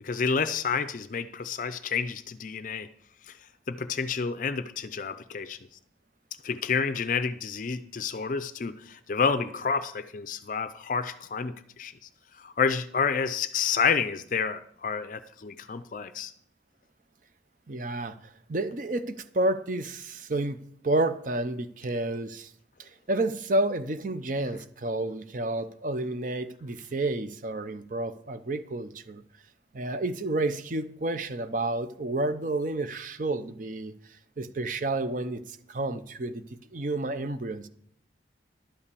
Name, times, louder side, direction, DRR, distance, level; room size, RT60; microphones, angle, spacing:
voice 1, 0.0-2.9 3.3-3.4 3.7-5.6 6.4-11.9 12.4-16.3, left 5 dB, 45° left, 12 dB, 0.4 m, -29 dB
voice 2, 17.7-18.2 18.5-22.5 22.8-29.2 29.7-33.9 34.4-36.4 36.7-37.7, right 2 dB, 45° right, 11 dB, 0.6 m, -30 dB
11.5 x 5.6 x 6.8 m, 0.66 s
head